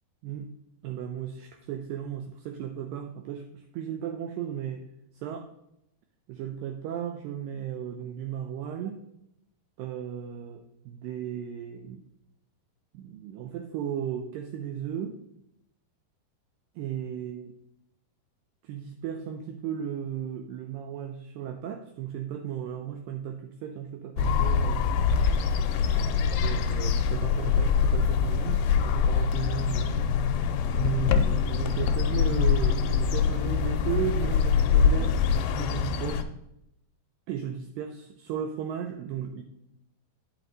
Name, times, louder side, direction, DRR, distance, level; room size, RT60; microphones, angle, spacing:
voice 1, 0.8-4.9 5.2-5.5 6.3-9.0 9.8-12.0 12.9-15.2 16.8-17.5 18.6-24.9 25.9-30.0 30.7-35.2 35.6-36.3 37.3-39.4, right 9 dB, 80° right, 5 dB, 2.1 m, -35 dB
sound 1, 24.2-36.2, left 6 dB, 80° left, 2.1 m, -24 dB
9.1 x 6.0 x 3.9 m, 0.80 s
omnidirectional pair, 4.3 m